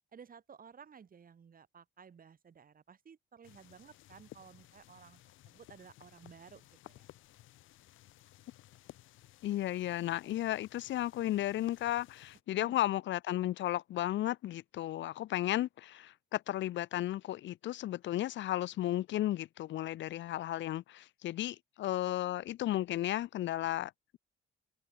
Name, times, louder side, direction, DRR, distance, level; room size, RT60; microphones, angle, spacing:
voice 1, 0.1-7.0 12.5-12.8, right 7 dB, 45° right, 4.6 m, -56 dB
sound 1, 3.4-12.4, left 15 dB, 90° left, 2.5 m, -58 dB
voice 2, 9.4-24.2, left 14 dB, 70° left, 0.6 m, -34 dB
open air
cardioid pair, 90°, 20 cm